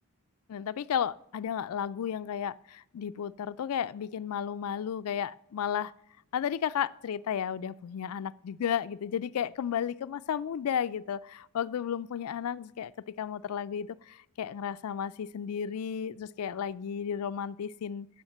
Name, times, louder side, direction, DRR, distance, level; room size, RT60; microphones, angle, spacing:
voice 1, 0.5-5.9 6.3-18.1, left 8 dB, 75° left, 15 dB, 0.4 m, -33 dB
14.5 x 5.8 x 7.7 m, 0.80 s
head